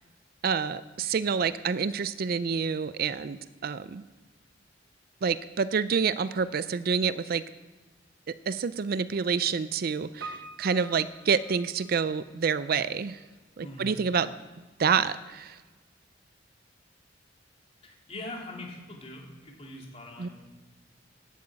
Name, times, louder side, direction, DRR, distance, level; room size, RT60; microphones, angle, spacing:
voice 1, 0.4-4.0 5.2-7.4 8.3-13.2 13.6-14.3 14.8-15.6 20.2-20.3, right 6 dB, 55° right, 15 dB, 0.4 m, -28 dB
Piano, 10.2-12.3 12.5-12.6, right 3 dB, 70° right, 1.1 m, -44 dB
voice 2, 13.6-13.9 17.8-20.3, left 2 dB, 35° left, -1 dB, 3.1 m, -42 dB
11.0 x 8.6 x 8.8 m, 1.3 s
head